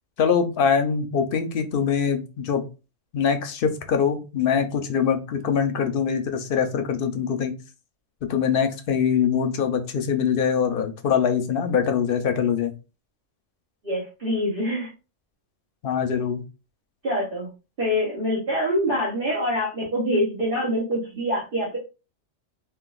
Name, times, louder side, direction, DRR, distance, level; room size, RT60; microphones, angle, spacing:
voice 1, 0.2-2.6 3.1-7.5 8.3-12.7 15.8-16.4, left 7 dB, 60° left, 6 dB, 0.7 m, -23 dB
voice 2, 13.8-14.9 17.0-17.5 17.8-21.8, equal, 50° right, -5 dB, 1.2 m, -25 dB
3.7 x 2.5 x 2.3 m, 0.30 s
omnidirectional pair, 1.2 m